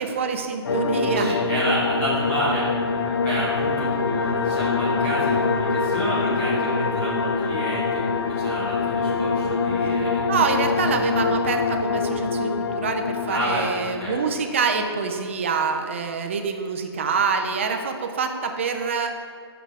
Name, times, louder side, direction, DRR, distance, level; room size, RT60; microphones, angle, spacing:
voice 1, 0.0-1.4 10.3-19.2, right 5 dB, 30° right, 5 dB, 0.4 m, -26 dB
sound 1, 0.6-14.6, left 4 dB, 60° left, 0.4 m, -25 dB
voice 2, 1.1-2.7 3.2-10.2 13.3-14.2, right 1 dB, 10° left, -8 dB, 1.0 m, -29 dB
5.9 x 5.5 x 4.7 m, 2.3 s
hypercardioid pair, 170°, 14 cm